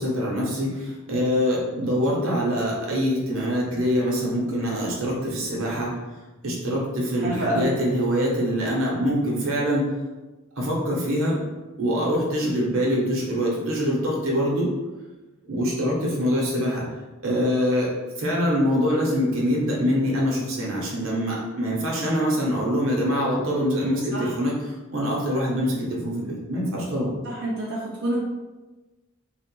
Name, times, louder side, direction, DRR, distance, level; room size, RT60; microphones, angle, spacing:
voice 1, 0.0-5.9 6.4-9.9 10.6-11.4 11.8-14.7 15.5-16.8 17.2-17.9 18.2-27.1, equal, 70° right, -3 dB, 0.9 m, -24 dB
voice 2, 7.2-7.7 24.1-24.3 27.2-28.3, equal, 50° right, -6 dB, 0.4 m, -27 dB
3.0 x 2.1 x 3.0 m, 1.2 s
head